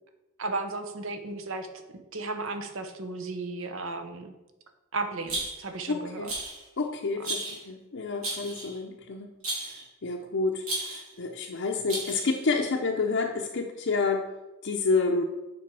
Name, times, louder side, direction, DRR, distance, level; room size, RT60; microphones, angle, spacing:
voice 1, 0.4-1.7 2.1-4.3 4.9-6.5 7.2-7.6, right 3 dB, 65° right, 7 dB, 0.9 m, -35 dB
Rattle, 5.3-5.8 6.2-6.6 7.2-7.6 8.2-8.8 9.4-9.8 10.6-11.1 11.9-12.4, right 2 dB, 85° right, 3.1 m, -34 dB
voice 2, 5.9-6.3 6.8-9.3 9.6-14.3 14.6-15.2, left 4 dB, 60° left, -1 dB, 0.6 m, -29 dB
8.4 x 5.1 x 4.7 m, 1.0 s
head